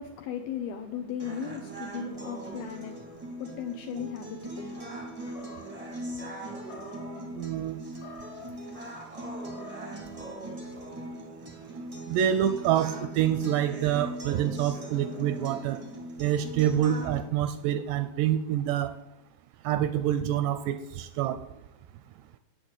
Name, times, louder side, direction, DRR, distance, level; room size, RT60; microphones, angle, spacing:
voice 1, 0.0-5.8, left 8 dB, 80° left, 2.2 m, -38 dB
sound 1, 1.2-17.2, right 1 dB, 50° right, 0.4 m, -40 dB
Animal, 5.2-5.9 6.6-7.3 7.9-8.6 9.3-10.0, left 3 dB, 50° left, 1.8 m, -48 dB
voice 2, 7.3-7.8 12.1-15.8 16.2-18.9 19.6-21.4, right 10 dB, 85° right, 2.5 m, -27 dB
9.1 x 8.3 x 7.9 m
omnidirectional pair, 5.2 m